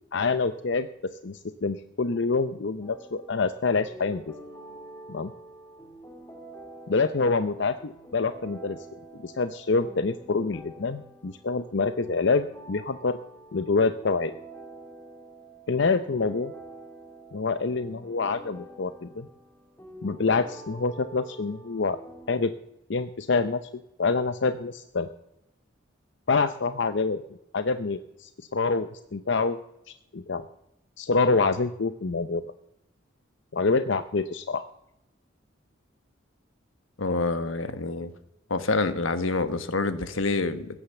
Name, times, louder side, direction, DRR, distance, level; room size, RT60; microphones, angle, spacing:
voice 1, 0.1-0.9 1.2-4.2 5.1-5.3 6.9-8.8 9.2-13.2 13.5-14.3 15.7-16.5 17.3-19.3 20.0-22.0 22.3-22.5 22.9-23.6 24.0-25.1 26.3-27.2 27.5-29.6 30.1-30.4 31.0-32.4 33.5-34.7, left 4 dB, 60° left, 11 dB, 0.6 m, -26 dB
sound 1, 2.8-22.3, right 1 dB, 15° left, 2.2 m, -47 dB
voice 2, 37.0-38.1 38.5-40.7, left 3 dB, 85° left, 11 dB, 1.4 m, -27 dB
16.0 x 9.9 x 7.1 m, 0.87 s
head